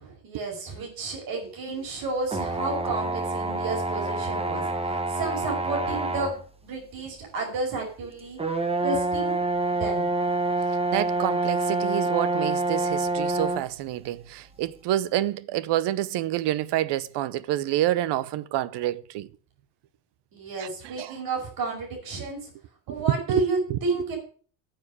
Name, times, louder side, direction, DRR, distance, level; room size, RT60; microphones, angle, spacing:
voice 1, 0.0-8.4 8.8-9.4 9.7-10.1 20.3-22.5 22.9-24.2, right 3 dB, 50° right, 5.3 m, -31 dB
sound 1, 2.3-6.4 7.1-7.2 8.4-13.7, right 2 dB, 15° right, 1.0 m, -27 dB
voice 2, 10.9-19.3 20.6-20.7 21.0-21.1 22.9-23.0 23.3-23.4 23.7-23.8, right 13 dB, 65° right, 0.8 m, -28 dB
9.6 x 7.7 x 8.4 m
cardioid pair, 170°, 45 cm